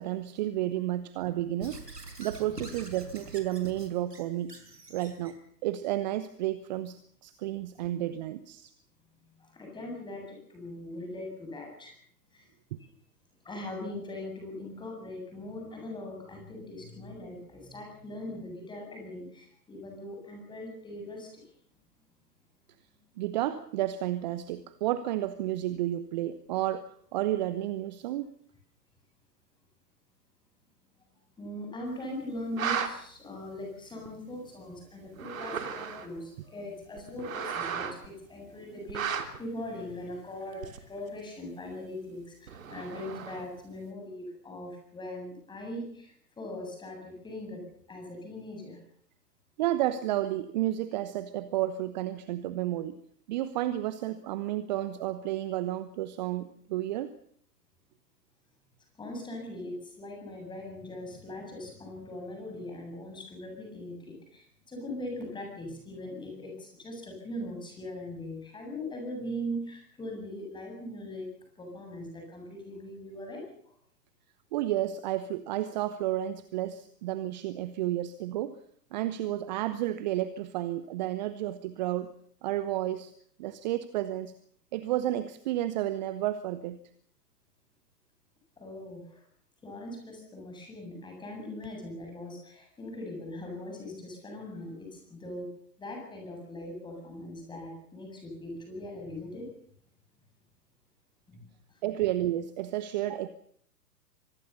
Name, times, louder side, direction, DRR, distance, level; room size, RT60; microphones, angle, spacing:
voice 1, 0.0-1.8 2.2-4.5 4.9-5.3 5.6-7.0 7.2-8.7 23.2-28.3 49.6-53.0 53.3-57.1 74.5-78.6 78.9-82.1 82.4-83.1 83.4-84.3 84.7-86.8 101.8-103.3, right 13 dB, 30° right, 14 dB, 1.0 m, -31 dB
Squeak / Writing, 1.6-5.4, right 2 dB, 80° right, 5.2 m, -45 dB
voice 2, 9.4-11.9 12.3-12.5 12.8-12.9 13.4-21.4 23.0-23.2 31.4-47.6 47.9-48.8 59.0-71.3 71.6-73.4 88.6-89.2 89.6-95.5 95.8-99.5 101.3-101.4 101.7-101.8, left 1 dB, 10° left, 2 dB, 7.8 m, -40 dB
sound 1, 32.4-32.9 34.1-34.2 35.1-36.2 37.0-38.1 38.9-39.4 40.6-41.0 42.5-43.6, right 7 dB, 55° right, 3.1 m, -34 dB
25.0 x 20.0 x 7.0 m, 0.62 s
figure-of-eight pair, 120°, 48 cm